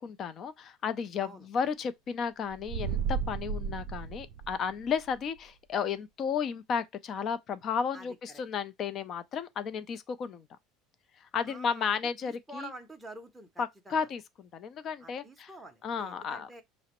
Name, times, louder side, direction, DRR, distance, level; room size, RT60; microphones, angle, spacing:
voice 1, 0.0-10.5 11.2-12.7 13.6-15.5 15.8-16.5, left 6 dB, 40° left, 0.5 m, -33 dB
sound 1, 2.5-5.0, right 6 dB, 70° right, 0.4 m, -33 dB
voice 2, 7.9-8.4 11.4-14.0 15.0-16.6, right 2 dB, 5° right, 0.6 m, -48 dB
5.7 x 2.0 x 2.9 m
supercardioid pair, 120°, 0 cm